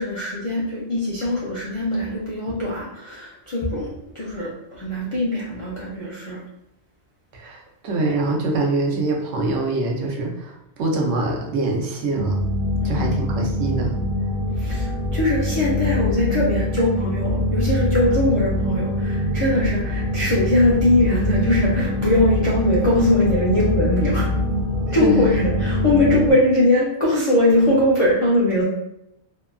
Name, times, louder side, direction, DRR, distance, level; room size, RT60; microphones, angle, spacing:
voice 1, 0.0-6.4 12.8-13.1 14.6-24.3 24.9-28.6, left 1 dB, 60° left, -7 dB, 0.3 m, -21 dB
voice 2, 7.3-12.4 12.8-13.9 25.0-25.2, right 2 dB, 90° right, 0 dB, 0.9 m, -24 dB
sound 1, 12.2-26.3, left 1 dB, 60° right, 0.4 m, -23 dB
2.7 x 2.2 x 2.3 m, 0.81 s
omnidirectional pair, 1.2 m